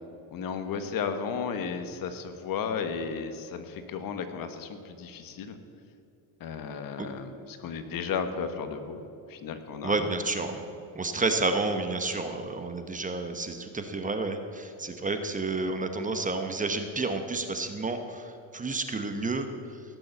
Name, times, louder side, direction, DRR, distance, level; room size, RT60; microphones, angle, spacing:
voice 1, 0.3-5.6 6.4-9.0 9.3-10.1, left 6 dB, 50° left, 8 dB, 1.4 m, -34 dB
voice 2, 9.8-10.6 10.9-19.5, right 3 dB, 20° right, 7 dB, 1.0 m, -30 dB
17.0 x 7.0 x 8.1 m, 2.7 s
cardioid pair, 125°, 42 cm